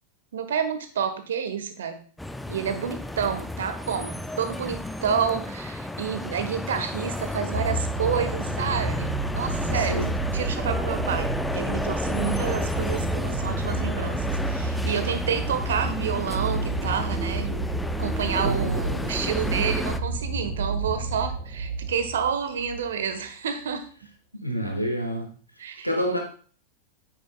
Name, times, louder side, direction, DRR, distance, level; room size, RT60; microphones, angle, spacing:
voice 1, 0.3-2.0 2.5-10.0 10.3-24.1 25.6-25.9, right 7 dB, 65° right, 8 dB, 1.2 m, -29 dB
sound 1, 2.2-20.0, left 1 dB, 5° left, 0.5 m, -32 dB
sound 2, 7.5-22.9 23.7-23.8, right 2 dB, 30° right, 4.4 m, -30 dB
voice 2, 9.7-10.1 18.4-19.0 24.4-25.3 25.8-26.2, equal, 90° left, 2 dB, 1.8 m, -28 dB
9.3 x 9.2 x 2.3 m, 0.43 s
figure-of-eight pair, 90°, 0 cm